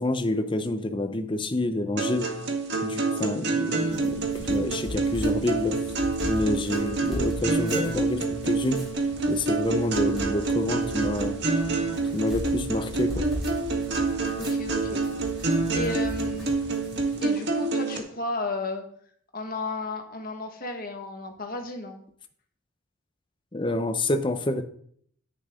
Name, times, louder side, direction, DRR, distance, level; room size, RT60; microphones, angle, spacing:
voice 1, 0.0-2.3 2.8-5.8 6.2-8.9 9.3-11.4 12.1-13.3 23.5-24.6, left 1 dB, 25° left, 8 dB, 0.7 m, -28 dB
sound 1, 2.0-18.0, right 3 dB, 55° right, 1.7 m, -27 dB
sound 2, 3.8-17.2, equal, ahead, 3.8 m, -38 dB
voice 2, 14.4-15.1 15.7-16.5 17.2-18.8 19.3-22.0, left 2 dB, 45° left, 4 dB, 1.6 m, -33 dB
9.9 x 9.9 x 3.7 m, 0.62 s
head